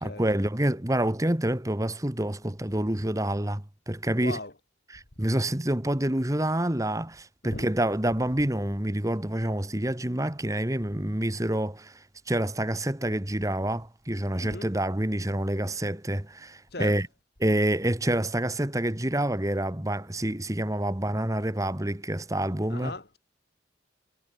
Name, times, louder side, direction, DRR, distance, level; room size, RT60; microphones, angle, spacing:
voice 1, 0.0-4.4 4.9-17.1 17.4-23.0, right 1 dB, 15° right, 1.4 m, -27 dB
voice 2, 4.2-4.5 7.4-7.7 14.4-14.7 16.7-17.0 22.7-23.2, left 2 dB, 55° left, 2.8 m, -37 dB
head